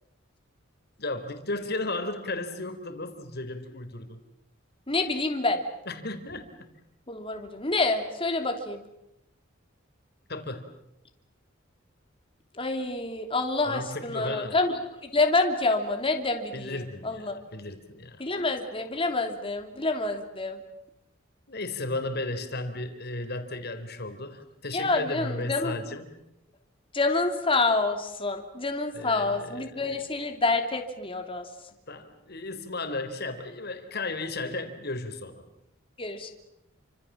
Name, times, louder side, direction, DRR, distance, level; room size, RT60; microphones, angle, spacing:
voice 1, 1.0-4.2 5.9-6.7 10.3-10.7 13.6-14.6 16.5-18.2 21.5-26.1 28.9-30.0 31.9-35.4, left 2 dB, 55° left, 8 dB, 3.8 m, -35 dB
voice 2, 4.9-5.6 7.1-8.8 12.6-17.4 18.2-20.6 24.7-25.7 26.9-31.4 36.0-36.3, left 3 dB, 25° left, 5 dB, 3.0 m, -27 dB
30.0 x 26.0 x 7.5 m, 0.84 s
head